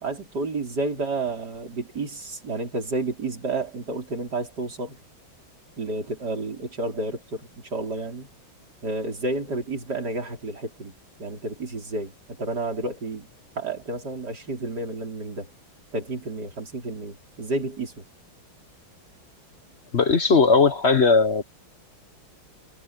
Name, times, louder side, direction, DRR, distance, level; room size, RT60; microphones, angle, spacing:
voice 1, 0.0-5.0 5.8-8.3 8.8-10.9 11.2-12.1 12.4-13.3 13.6-15.5 15.9-18.0, right 2 dB, 50° right, 5.6 m, -30 dB
voice 2, 19.9-21.4, left 4 dB, 45° left, 1.0 m, -18 dB
omnidirectional pair, 2.2 m